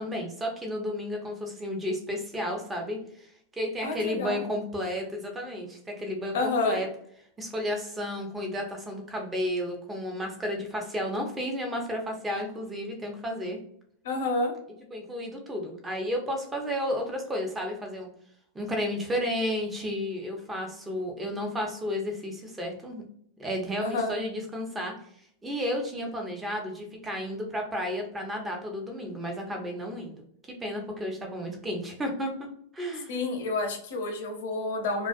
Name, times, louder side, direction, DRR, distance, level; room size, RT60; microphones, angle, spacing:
voice 1, 0.0-6.9 7.4-13.6 14.9-18.1 18.5-23.0 23.4-24.9 25.4-30.2 30.6-32.5 32.7-33.2, equal, 15° right, 2 dB, 0.7 m, -32 dB
voice 2, 3.8-4.4 6.3-6.8 14.0-14.5 23.8-24.1 33.1-35.1, left 2 dB, 75° left, 3 dB, 0.7 m, -29 dB
2.4 x 2.2 x 2.4 m, 0.66 s
hypercardioid pair, 105°, 0 cm